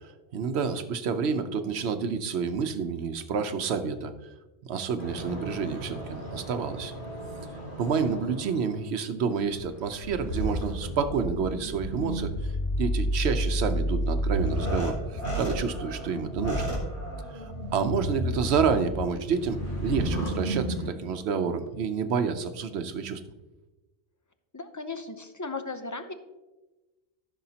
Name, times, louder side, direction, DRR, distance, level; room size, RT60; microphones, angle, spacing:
voice 1, 0.3-4.1 4.6-6.9 7.8-16.7 17.3-23.2, right 6 dB, 85° right, 9 dB, 1.0 m, -29 dB
sound 1, 5.0-8.7 9.3-20.9, equal, 50° left, 2.7 m, -31 dB
voice 2, 24.5-26.1, left 3 dB, 20° left, 7 dB, 0.5 m, -36 dB
14.5 x 6.4 x 2.8 m, 1.1 s
omnidirectional pair, 1.1 m